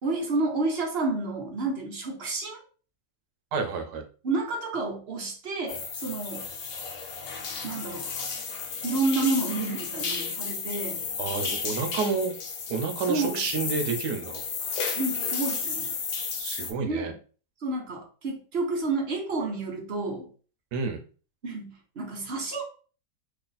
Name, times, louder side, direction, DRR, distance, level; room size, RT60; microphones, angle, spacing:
voice 1, 0.0-2.6 4.2-6.5 7.6-8.1 8.8-11.0 13.0-13.4 14.9-15.9 16.8-17.2 17.6-20.3 21.4-22.6, right 3 dB, 45° right, 1 dB, 1.0 m, -30 dB
voice 2, 3.5-4.0 11.2-12.3 12.7-14.4 16.4-17.1 20.7-21.0, right 5 dB, 85° right, 6 dB, 1.3 m, -29 dB
sound 1, 5.7-16.7, left 5 dB, 60° left, 1.1 m, -33 dB
3.3 x 2.4 x 3.9 m, 0.38 s
omnidirectional pair, 1.7 m